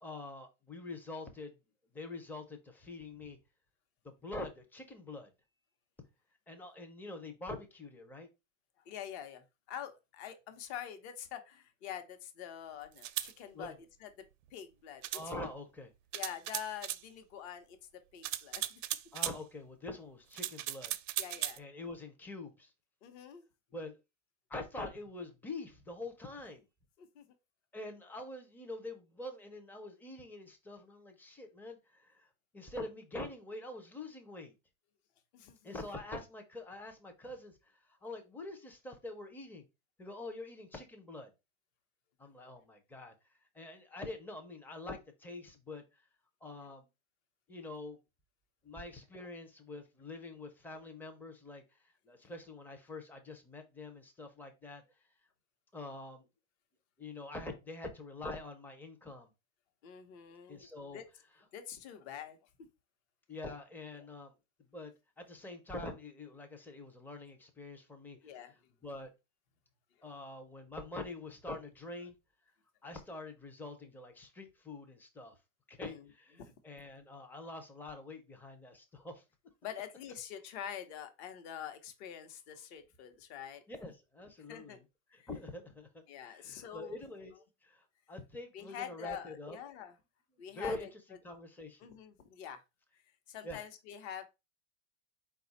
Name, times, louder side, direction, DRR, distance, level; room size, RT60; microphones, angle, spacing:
voice 1, 0.0-1.5 1.9-3.4 4.0-5.3 6.5-8.3 13.5-13.8 15.1-15.9 19.1-21.0 21.6-22.7 23.7-24.0 24.5-26.7 27.7-34.5 35.6-39.6 40.0-41.3 42.2-43.1 43.5-46.1 46.4-46.9 47.5-48.0 48.6-54.8 55.7-56.3 57.0-59.3 60.5-61.0 61.3-61.5 63.3-64.3 64.7-68.5 68.8-69.1 70.0-72.2 72.8-75.4 75.7-79.2 83.7-84.8 85.1-89.6 90.5-91.9 93.4-93.6, left 2 dB, 5° left, 0.4 m, -45 dB
voice 2, 8.9-13.7 14.0-14.2 14.5-15.0 16.1-18.8 21.2-21.6 23.0-23.5 27.0-27.2 35.3-35.7 59.8-60.6 60.9-61.1 61.5-62.4 63.9-64.0 68.2-68.5 70.0-70.1 75.8-76.0 76.4-76.5 79.6-83.6 84.5-84.8 85.2-85.3 86.1-87.0 88.5-89.9 90.4-90.9 91.8-92.6 93.3-94.2, left 9 dB, 55° left, 0.9 m, -45 dB
sound 1, 13.0-13.3 15.0-15.3 16.1-17.0 18.2-19.4 20.3-21.6, right 13 dB, 75° right, 0.5 m, -37 dB
4.3 x 2.3 x 4.0 m
supercardioid pair, 135°, 39 cm